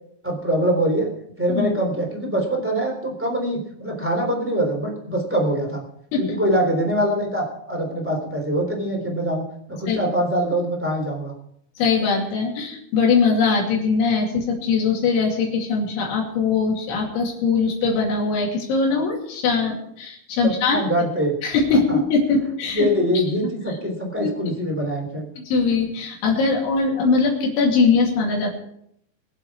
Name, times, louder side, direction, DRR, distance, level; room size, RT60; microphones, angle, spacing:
voice 1, 0.2-1.1 1.4-5.8 6.2-9.4 9.7-11.3 20.4-21.3 21.7-22.0 22.7-25.3, right 1 dB, 5° right, 0 dB, 2.4 m, -23 dB
voice 2, 11.8-20.8 21.4-22.9 24.2-24.3 25.5-28.5, left 4 dB, 75° left, -1 dB, 5.0 m, -21 dB
23.5 x 8.0 x 4.9 m, 0.72 s
omnidirectional pair, 5.4 m